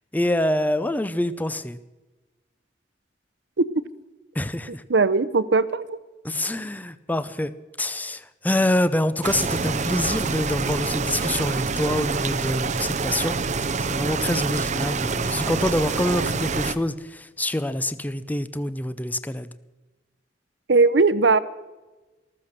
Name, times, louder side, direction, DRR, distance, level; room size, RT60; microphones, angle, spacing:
voice 1, 0.1-1.8 4.3-4.8 6.2-7.5 7.8-13.4 13.9-19.5, left 1 dB, 10° left, 14 dB, 0.6 m, -26 dB
voice 2, 4.9-6.0 20.7-21.4, right 3 dB, 70° right, 16 dB, 0.8 m, -19 dB
sound 1, 9.2-16.8, right 4 dB, 40° right, 0.7 m, -26 dB
14.5 x 14.0 x 6.6 m, 1.2 s
head